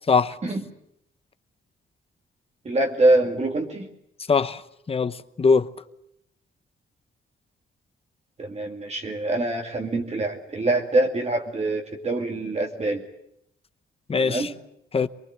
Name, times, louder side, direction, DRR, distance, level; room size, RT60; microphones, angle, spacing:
voice 1, 2.6-3.9 8.4-13.0 14.2-14.5, right 2 dB, 30° right, 2.4 m, -24 dB
voice 2, 4.3-4.6 4.9-5.7 14.1-14.5 14.9-15.1, left 5 dB, 30° left, 0.9 m, -21 dB
23.5 x 23.0 x 7.9 m
wide cardioid pair, 130°, 21 cm